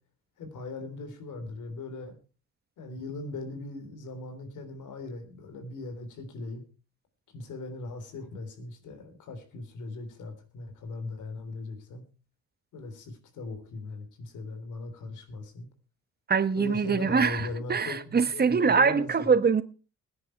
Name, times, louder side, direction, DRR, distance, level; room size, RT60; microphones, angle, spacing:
voice 1, 0.4-2.2 2.8-6.6 7.3-12.0 12.7-15.7 16.6-19.3, left 3 dB, 80° left, 7 dB, 3.6 m, -39 dB
voice 2, 16.3-19.6, right 5 dB, 30° right, 13 dB, 1.3 m, -24 dB
17.5 x 10.0 x 4.6 m, 0.34 s
cardioid pair, 90°, 30 cm